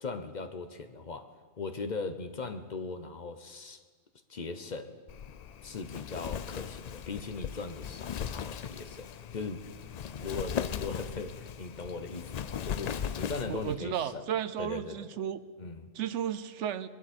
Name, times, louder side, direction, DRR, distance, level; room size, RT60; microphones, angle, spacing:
voice 1, 0.0-3.8 4.3-5.0 5.6-9.6 10.1-14.2 14.6-15.1 15.6-15.9, left 4 dB, 45° left, 9 dB, 0.8 m, -39 dB
Wind, 5.1-13.8, left 8 dB, 60° left, 0.4 m, -38 dB
voice 2, 13.3-15.4 15.9-16.9, right 9 dB, 90° right, 14 dB, 1.0 m, -34 dB
21.5 x 12.0 x 4.3 m, 1.5 s
omnidirectional pair, 1.2 m